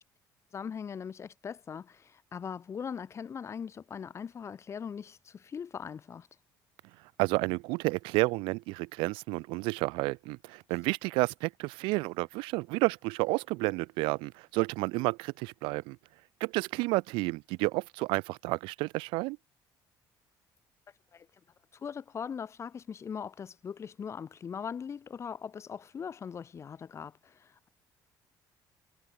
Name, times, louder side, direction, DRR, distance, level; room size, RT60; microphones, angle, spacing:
voice 1, 0.5-6.3 21.1-21.3 21.7-27.7, left 7 dB, 35° left, 0.4 m, -40 dB
voice 2, 7.2-16.0 16.4-19.4, right 25 dB, 90° right, 0.4 m, -31 dB
cardioid pair, 90°, 8 cm